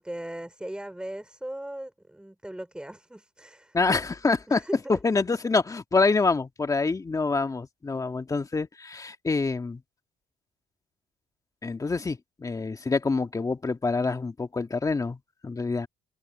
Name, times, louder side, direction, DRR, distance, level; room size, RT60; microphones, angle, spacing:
voice 1, 0.0-3.8 4.5-5.0, right 1 dB, 5° right, 5.1 m, -38 dB
voice 2, 3.7-4.6 4.9-9.8 11.6-15.9, left 4 dB, 20° left, 1.8 m, -26 dB
cardioid pair, 110°, 17 cm